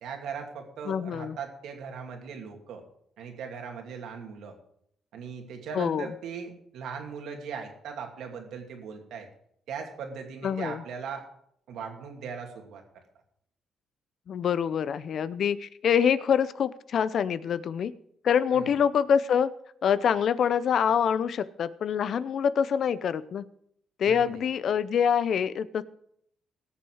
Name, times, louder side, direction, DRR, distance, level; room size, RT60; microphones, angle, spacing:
voice 1, 0.0-2.8 3.2-4.5 5.1-9.3 9.7-11.2 11.7-12.8 18.5-18.7 24.1-24.4, right 6 dB, 80° right, 3 dB, 2.6 m, -39 dB
voice 2, 0.9-1.4 5.7-6.1 10.4-10.8 14.3-17.9 18.2-19.5 19.8-23.5 24.0-25.8, left 8 dB, 60° left, 16 dB, 0.6 m, -25 dB
18.0 x 7.2 x 4.9 m, 0.70 s
cardioid pair, 90°, 0 cm